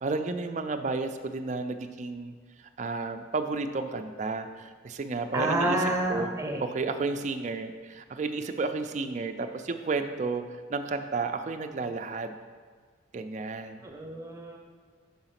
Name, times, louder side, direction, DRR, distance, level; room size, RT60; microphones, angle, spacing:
voice 1, 0.0-2.3 2.8-5.8 6.1-6.3 6.6-10.4 10.7-12.3 13.1-13.8, right 3 dB, 40° right, 8 dB, 0.4 m, -32 dB
voice 2, 5.3-6.7 13.8-14.6, right 1 dB, 15° right, 2 dB, 0.7 m, -29 dB
5.7 x 4.9 x 5.7 m, 1.6 s
head